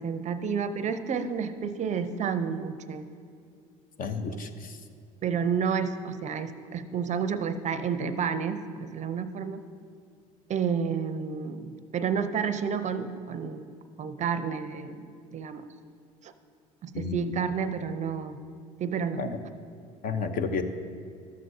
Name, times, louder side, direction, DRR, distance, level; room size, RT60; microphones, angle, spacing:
voice 1, 0.0-3.0 5.2-9.6 10.5-13.7 14.0-15.0 15.3-15.6 16.2-16.3 16.8-18.4 18.8-19.2, right 6 dB, 40° right, 11 dB, 0.5 m, -30 dB
voice 2, 4.0-4.8 16.9-17.3 19.2-19.4 20.0-20.6, left 5 dB, 45° left, 8 dB, 0.7 m, -31 dB
13.0 x 7.5 x 2.7 m, 2.3 s
hypercardioid pair, 80°, 19 cm